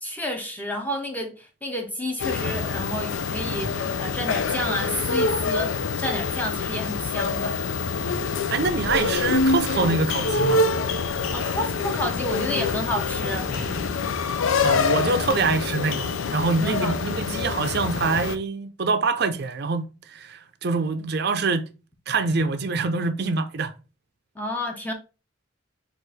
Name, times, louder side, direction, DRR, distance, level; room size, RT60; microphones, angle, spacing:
voice 1, 0.0-7.6 11.0-13.5 16.6-17.0 24.4-24.9, left 1 dB, 10° left, 0.7 m, -30 dB
sound 1, 2.2-18.4, left 4 dB, 80° left, 0.5 m, -26 dB
voice 2, 8.5-10.7 14.6-21.7 22.1-23.7, right 4 dB, 50° right, 0.5 m, -25 dB
sound 2, 8.7-10.3 10.6-13.8, left 1 dB, 50° left, 1.7 m, -40 dB
4.5 x 2.5 x 4.8 m
head